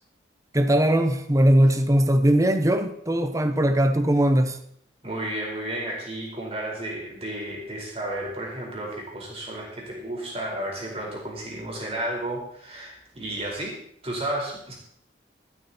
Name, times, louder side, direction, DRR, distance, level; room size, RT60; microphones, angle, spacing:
voice 1, 0.5-4.6, right 1 dB, 20° right, 1.0 m, -20 dB
voice 2, 5.0-13.7 14.0-14.7, right 1 dB, 35° right, 4.7 m, -32 dB
13.5 x 13.0 x 4.4 m
head